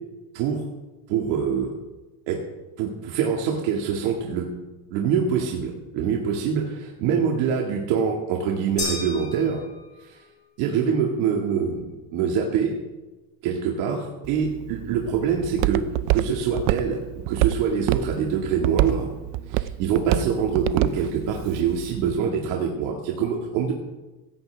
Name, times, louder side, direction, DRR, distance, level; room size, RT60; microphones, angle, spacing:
voice 1, 0.3-0.7 1.1-1.7 2.3-2.4 2.8-4.5 4.9-9.6 10.0-10.2 10.6-12.7 13.4-17.0 17.3-19.1 19.5-23.7, right 7 dB, 85° right, 0 dB, 2.1 m, -25 dB
sound 1, 8.8-10.2, left 2 dB, 15° left, 5.5 m, -33 dB
Walk footsteps, 14.2-22.2, right 15 dB, 50° right, 0.5 m, -27 dB
16.5 x 15.5 x 3.5 m, 1.1 s
cardioid pair, 180°, 44 cm